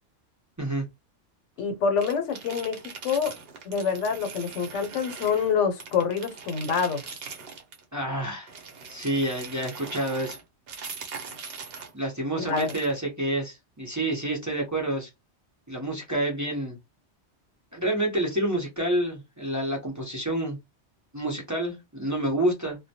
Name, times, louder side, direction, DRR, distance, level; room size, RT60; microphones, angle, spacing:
voice 1, 1.6-3.3 3.6-7.0 12.4-12.7, left 6 dB, 80° left, 1.0 m, -26 dB
sound 1, 2.0-5.5 5.8-7.8 8.5-11.9 12.4-13.0, right 5 dB, 60° right, 0.8 m, -41 dB
voice 2, 7.9-8.5 8.9-10.4 11.9-15.1 15.7-16.8 17.7-20.6 21.1-22.8, right 1 dB, 20° right, 0.4 m, -28 dB
2.1 x 2.1 x 2.7 m
omnidirectional pair, 1.2 m